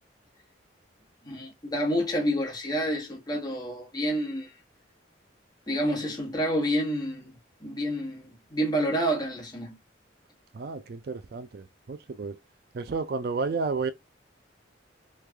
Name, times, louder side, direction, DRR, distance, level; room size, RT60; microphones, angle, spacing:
voice 1, 1.2-4.5 5.7-9.8, equal, 20° left, 1.1 m, -29 dB
voice 2, 10.5-12.4 12.7-13.9, right 4 dB, 55° right, 0.4 m, -31 dB
3.2 x 2.3 x 3.4 m
head